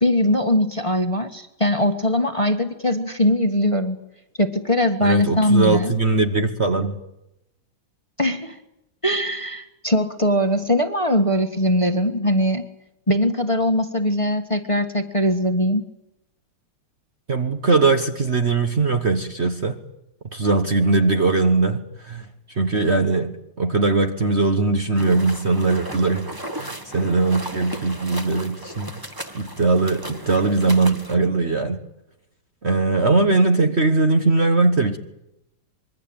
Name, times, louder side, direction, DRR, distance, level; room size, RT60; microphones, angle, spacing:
voice 1, 0.0-4.0 4.4-5.9 8.2-8.6 9.0-12.6 13.1-15.8, left 1 dB, 15° left, 1.5 m, -21 dB
voice 2, 5.0-7.0 17.3-19.8 20.3-22.2 22.6-28.9 29.3-31.8 32.6-35.0, right 3 dB, 40° right, 1.3 m, -20 dB
sound 1, 24.9-31.1, right 1 dB, 15° right, 1.3 m, -35 dB
26.0 x 22.5 x 8.8 m
omnidirectional pair, 2.1 m